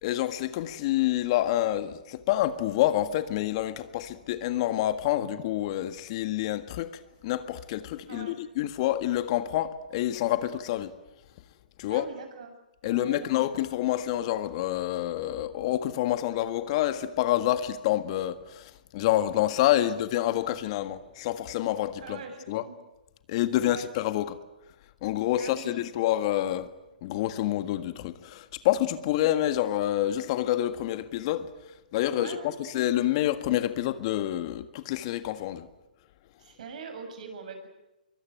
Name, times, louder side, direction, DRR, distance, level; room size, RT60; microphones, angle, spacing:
voice 1, 0.0-6.9 7.2-10.9 11.8-12.1 12.8-22.2 22.5-22.6 23.3-24.4 25.0-26.7 27.0-31.5 31.9-35.7, left 13 dB, 40° left, 1.7 m, -27 dB
voice 2, 8.1-8.4 11.9-12.6 12.8-13.4 19.8-20.0 22.0-22.8 23.5-23.9 25.4-25.8 32.1-32.7 36.4-37.7, right 5 dB, 55° right, 7.3 m, -42 dB
25.5 x 23.5 x 9.3 m
figure-of-eight pair, 125°, 5 cm